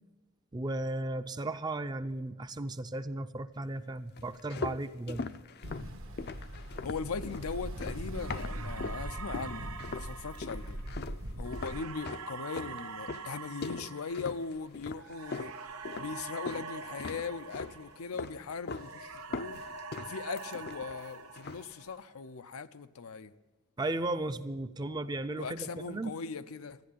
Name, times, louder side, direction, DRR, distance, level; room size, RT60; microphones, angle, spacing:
voice 1, 0.5-5.3 23.8-26.1, right 2 dB, 20° right, 0.5 m, -35 dB
sound 1, 4.2-9.0 9.3-10.1 10.4-16.7 17.0-17.8 18.1-18.9 19.2-21.0 21.4-21.7, left 4 dB, 50° left, 0.5 m, -41 dB
Ocean, 5.6-11.9, right 1 dB, 65° right, 1.2 m, -41 dB
voice 2, 6.8-10.8 11.4-15.5 16.0-19.6 20.0-23.3 25.4-26.8, left 5 dB, 90° left, 0.6 m, -39 dB
sound 2, 8.2-18.4 18.7-22.1, right 5 dB, 85° right, 1.1 m, -45 dB
13.5 x 10.0 x 8.5 m
head